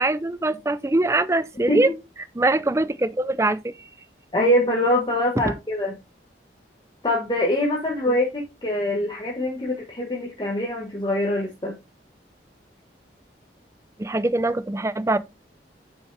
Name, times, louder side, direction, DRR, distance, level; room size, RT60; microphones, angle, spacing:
voice 1, 0.0-1.9 2.4-3.7 8.1-8.2 14.0-15.2, right 2 dB, 15° right, 0.5 m, -22 dB
voice 2, 4.3-5.9 7.0-11.8, left 1 dB, 25° left, 1.3 m, -24 dB
6.7 x 5.5 x 3.3 m
head